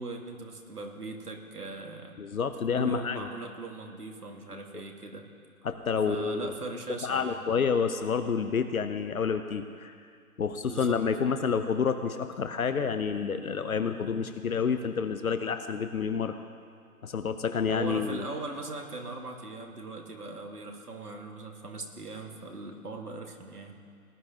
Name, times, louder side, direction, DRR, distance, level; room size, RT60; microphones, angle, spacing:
voice 1, 0.0-2.2 2.8-5.2 6.1-7.4 10.7-11.0 17.7-23.7, right 3 dB, 85° right, 2 dB, 1.9 m, -40 dB
voice 2, 2.2-3.3 5.6-6.5 7.0-9.9 10.4-16.3 17.0-18.3, left 6 dB, 70° left, 8 dB, 0.8 m, -29 dB
19.0 x 11.5 x 2.9 m, 2.2 s
figure-of-eight pair, 140°, 45 cm